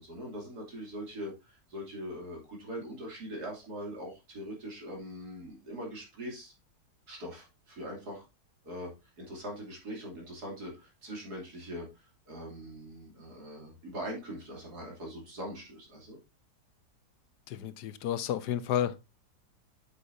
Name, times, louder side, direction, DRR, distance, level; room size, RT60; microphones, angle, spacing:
voice 1, 0.0-6.5 7.1-8.2 8.6-16.2, equal, 65° right, 3.4 m, -42 dB
voice 2, 17.5-19.0, left 10 dB, 80° left, 1.3 m, -31 dB
8.1 x 7.5 x 2.6 m
omnidirectional pair, 1.8 m